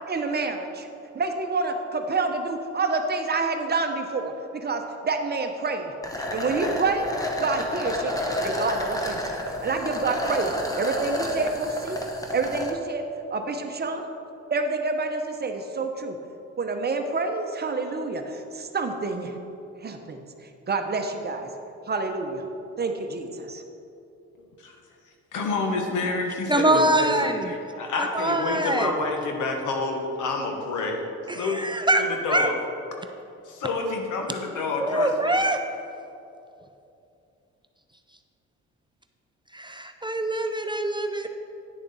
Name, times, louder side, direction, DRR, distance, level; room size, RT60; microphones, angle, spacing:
voice 1, 0.1-0.9 1.1-5.9 6.3-7.1 7.4-12.0 12.3-13.0 13.3-14.1 14.5-16.2 16.6-19.4 19.8-20.2 20.7-21.5 21.9-22.4 22.8-23.6, right 3 dB, 35° right, 5 dB, 0.8 m, -28 dB
sound 1, 6.0-12.7, left 1 dB, 10° left, 1.0 m, -30 dB
voice 2, 25.3-27.3 27.8-31.0 31.3-31.6 32.0-32.5 33.5-35.4, left 3 dB, 80° left, 2 dB, 1.3 m, -28 dB
voice 3, 26.5-27.5 28.0-28.9 31.3-32.0 32.3-32.5 34.8-35.6 39.5-41.3, right 1 dB, 15° right, 6 dB, 0.4 m, -24 dB
9.6 x 6.6 x 4.1 m, 2.7 s
cardioid pair, 90°, 30 cm